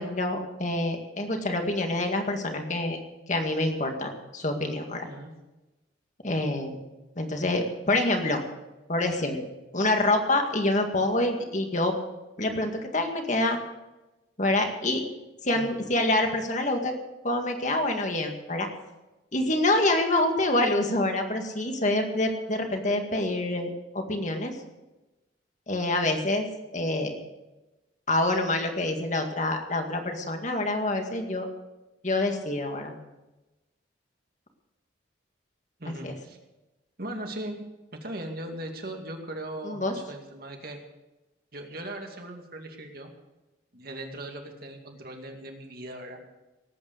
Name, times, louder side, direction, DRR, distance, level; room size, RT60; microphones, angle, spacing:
voice 1, 0.0-3.0 3.3-5.0 6.2-6.8 7.2-8.4 8.9-9.4 9.7-11.9 12.4-13.6 14.4-15.0 15.4-17.0 17.2-18.7 19.3-24.5 25.7-26.5 26.7-27.2 28.1-31.5 32.0-32.9 35.9-36.1 39.6-39.9, left 2 dB, 40° left, 4 dB, 2.0 m, -26 dB
voice 2, 35.8-36.4 37.0-37.6 37.9-40.8 41.5-43.1 43.7-46.2, right 1 dB, 50° right, 3 dB, 2.3 m, -39 dB
18.5 x 8.9 x 6.6 m, 1.1 s
head